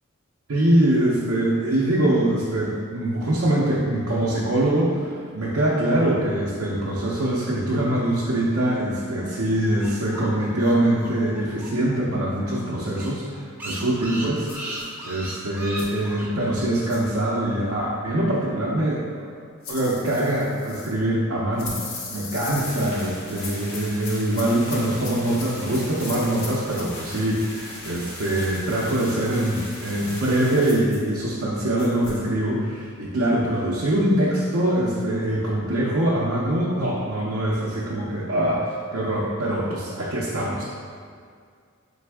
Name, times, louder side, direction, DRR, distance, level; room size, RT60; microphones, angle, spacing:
voice 1, 0.5-19.0 19.7-40.6, right 1 dB, 65° right, -6 dB, 0.6 m, -23 dB
sound 1, 9.5-12.0 12.2-12.3 12.6-12.7 12.9-16.3, right 1 dB, 10° right, 0.5 m, -36 dB
sound 2, 14.5-14.9 15.8-16.0 16.9-17.1 19.6-20.9 21.6-23.0 23.3-26.9 30.7-31.1 31.8-32.2, left 3 dB, 70° left, 0.7 m, -38 dB
sound 3, 22.6-30.7, left 1 dB, 90° left, 1.1 m, -39 dB
3.9 x 3.4 x 3.4 m, 2.1 s
head